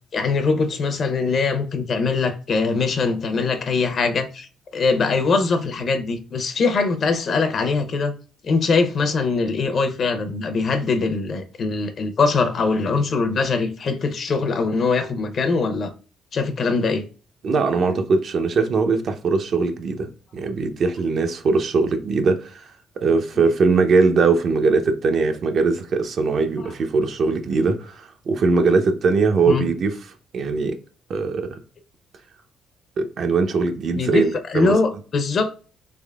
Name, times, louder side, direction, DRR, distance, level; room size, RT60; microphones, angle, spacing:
voice 1, 0.1-8.1 8.4-15.9 16.3-17.0 29.5-29.7 33.9-34.2 34.5-35.5, left 4 dB, 55° left, 0.6 m, -22 dB
voice 2, 17.4-22.7 23.0-29.9 30.3-30.8 31.1-31.6 33.0-34.8, right 4 dB, 60° right, 0.6 m, -21 dB
3.5 x 3.2 x 2.3 m
supercardioid pair, 75°, 0 cm